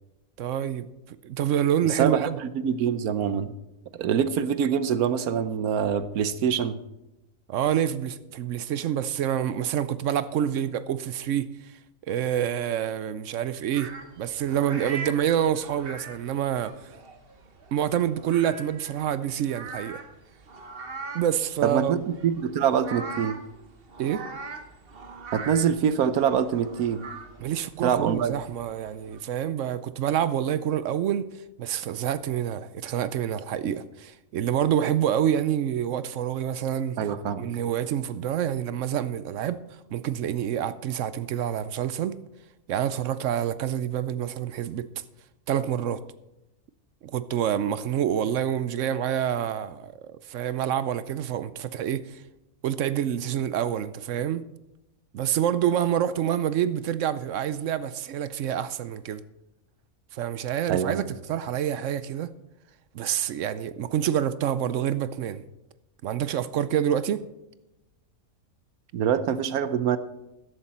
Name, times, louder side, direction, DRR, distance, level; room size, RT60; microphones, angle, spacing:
voice 1, 0.4-0.9 1.2-2.4 7.5-11.5 12.1-16.7 17.7-20.0 21.1-22.0 24.0-24.2 27.4-31.3 31.6-37.0 37.4-39.6 39.9-42.2 42.7-44.9 45.5-46.0 47.0-52.2 52.6-54.4 55.1-59.2 60.1-62.3 62.9-65.4 66.0-67.2, right 10 dB, 65° right, 0.9 m, -27 dB
voice 2, 1.8-3.5 3.9-6.8 21.6-23.4 25.3-27.1 27.8-28.4 37.0-37.5 60.7-61.0 68.9-70.0, right 8 dB, 90° right, 1.3 m, -25 dB
sound 1, 13.7-29.2, right 4 dB, 45° right, 1.3 m, -42 dB
14.0 x 11.0 x 4.3 m
omnidirectional pair, 1.5 m